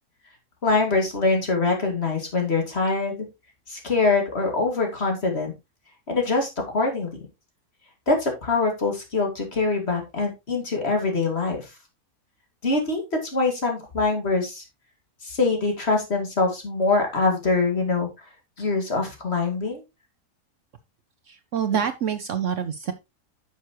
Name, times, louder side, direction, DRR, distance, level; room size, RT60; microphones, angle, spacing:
voice 1, 0.6-3.1 3.7-5.5 6.1-7.2 8.1-11.7 12.6-13.0 13.3-14.6 15.2-18.1 18.6-19.8, left 3 dB, 40° left, 3 dB, 2.3 m, -24 dB
voice 2, 21.3-22.9, right 8 dB, 60° right, 10 dB, 0.9 m, -26 dB
9.3 x 6.9 x 3.0 m, 0.24 s
omnidirectional pair, 1.6 m